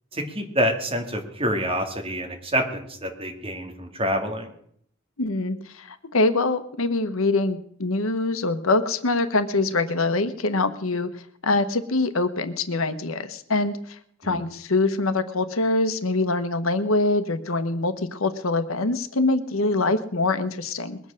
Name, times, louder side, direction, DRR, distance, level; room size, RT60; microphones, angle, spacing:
voice 1, 0.1-4.5 14.2-14.4, equal, 25° right, 3 dB, 2.3 m, -27 dB
voice 2, 5.2-21.0, left 2 dB, 75° left, 10 dB, 1.1 m, -24 dB
21.5 x 8.0 x 6.5 m, 0.66 s
head